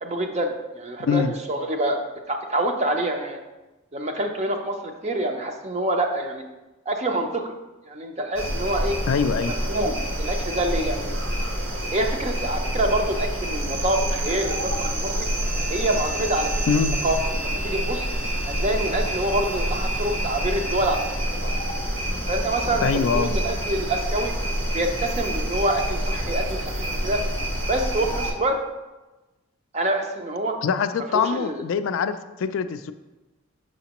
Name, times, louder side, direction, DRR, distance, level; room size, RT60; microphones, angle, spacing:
voice 1, 0.0-1.2 1.5-2.0 2.3-3.4 3.9-6.4 6.9-7.5 7.9-9.0 9.5-11.1 11.9-15.3 15.7-16.5 17.0-18.0 18.5-21.0 21.4-21.5 22.3-24.3 24.7-27.2 27.7-28.6 29.7-30.6 31.1-31.6, right 1 dB, 30° right, 4 dB, 0.5 m, -26 dB
voice 2, 1.0-1.3 9.1-9.5 16.7-17.0 22.8-23.3 30.6-32.9, left 6 dB, 65° left, 10 dB, 0.3 m, -23 dB
sound 1, 8.3-28.3, right 1 dB, 65° right, 1.1 m, -27 dB
Bowed string instrument, 15.3-21.3, equal, 85° right, 1.1 m, -37 dB
6.3 x 5.8 x 2.9 m, 1.1 s
head